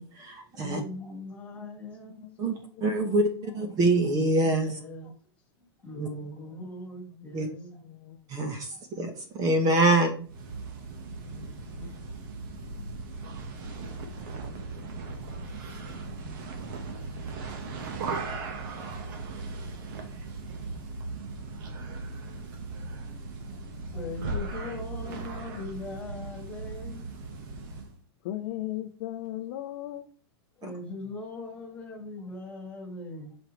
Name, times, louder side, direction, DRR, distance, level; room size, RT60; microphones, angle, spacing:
voice 1, 0.0-0.8 2.4-2.5 2.8-4.7 6.0-6.1 7.3-7.5 8.3-10.3 30.6-30.7, right 2 dB, 25° right, 1.0 m, -25 dB
voice 2, 0.5-2.7 3.0-3.9 4.4-5.1 5.8-7.8 8.7-8.8 23.1-23.2 23.9-27.0 30.6-33.4, left 2 dB, 10° left, 1.8 m, -41 dB
voice 3, 1.1-2.4 2.8-3.2 4.0-4.1 5.9-6.8 7.1-8.3 11.3-12.1 28.2-30.0, left 13 dB, 50° left, 0.6 m, -40 dB
sound 1, 10.2-28.0, right 3 dB, 50° right, 1.1 m, -38 dB
6.2 x 4.9 x 3.0 m
supercardioid pair, 150°, 14 cm